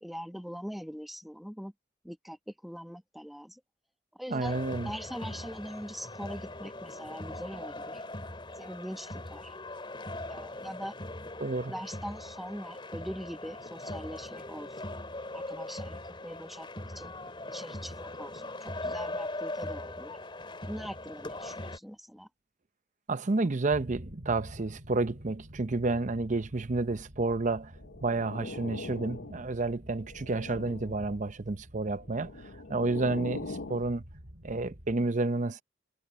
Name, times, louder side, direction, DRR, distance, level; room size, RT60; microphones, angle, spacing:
voice 1, 0.0-1.7 2.0-3.6 4.1-4.6 4.8-8.0 8.6-9.6 10.3-10.9 11.7-14.9 15.3-17.1 17.5-20.2 20.7-22.3, equal, ahead, 1.2 m, -42 dB
voice 2, 4.3-4.9 11.4-11.7 23.1-27.7 28.0-32.3 32.7-34.0 34.4-35.6, right 3 dB, 40° right, 0.7 m, -30 dB
sound 1, 4.4-21.8, left 2 dB, 25° left, 3.5 m, -40 dB
sound 2, 23.7-35.0, equal, 60° right, 4.1 m, -49 dB
sound 3, 27.8-29.6 30.0-31.1 32.0-33.9, left 3 dB, 75° left, 0.8 m, -42 dB
head